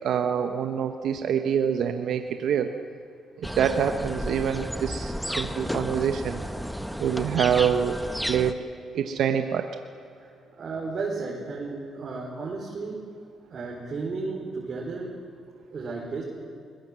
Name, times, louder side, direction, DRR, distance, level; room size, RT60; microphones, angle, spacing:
voice 1, 0.0-2.7 3.4-6.4 7.0-8.0 8.3-8.6 8.9-9.7, right 8 dB, 75° right, 6 dB, 1.1 m, -25 dB
sound 1, 3.4-8.5, equal, ahead, 1.2 m, -32 dB
voice 2, 10.6-13.0 13.5-15.1 15.7-16.2, right 3 dB, 50° right, -4 dB, 4.3 m, -33 dB
22.0 x 19.0 x 7.6 m, 2.5 s
cardioid pair, 90°, 0 cm